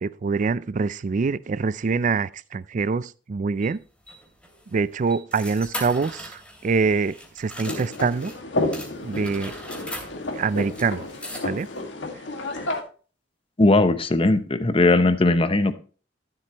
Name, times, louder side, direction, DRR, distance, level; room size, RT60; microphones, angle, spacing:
voice 1, 0.0-3.8 4.7-8.3 9.0-9.5 10.4-11.1 11.4-11.7, right 4 dB, 40° right, 0.4 m, -25 dB
sound 1, 3.6-8.4 8.7-11.8, equal, 5° left, 2.9 m, -40 dB
sound 2, 7.6-12.8, left 2 dB, 75° left, 1.9 m, -31 dB
voice 2, 13.6-15.7, left 2 dB, 30° left, 0.8 m, -19 dB
12.5 x 7.7 x 2.9 m
head